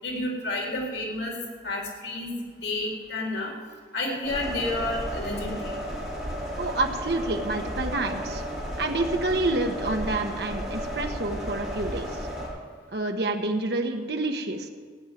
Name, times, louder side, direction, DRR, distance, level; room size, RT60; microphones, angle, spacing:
voice 1, 0.0-1.3 1.6-2.3 2.6-3.5 3.9-5.7, left 2 dB, 85° left, 0 dB, 4.0 m, -30 dB
sound 1, 4.2-12.5, equal, ahead, 5.5 m, -33 dB
voice 2, 6.6-8.4 8.8-12.3 12.9-14.7, right 2 dB, 65° right, 4 dB, 1.2 m, -28 dB
15.5 x 7.4 x 9.7 m, 1.5 s
head